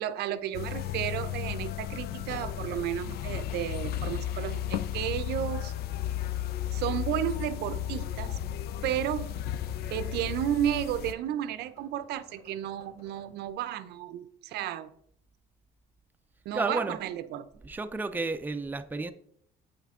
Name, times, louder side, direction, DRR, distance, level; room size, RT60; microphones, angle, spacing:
voice 1, 0.0-5.7 6.7-8.4 8.8-9.3 9.9-14.9 16.5-17.5, right 11 dB, 75° right, 13 dB, 0.5 m, -32 dB
sound 1, 0.5-11.1, left 11 dB, 70° left, 0.4 m, -34 dB
sound 2, 0.8-13.3, equal, 45° left, 2.8 m, -58 dB
voice 2, 16.5-17.0 17.5-19.1, right 3 dB, 10° right, 9 dB, 0.5 m, -32 dB
8.2 x 5.6 x 3.6 m, 0.66 s
cardioid pair, 110°, 17 cm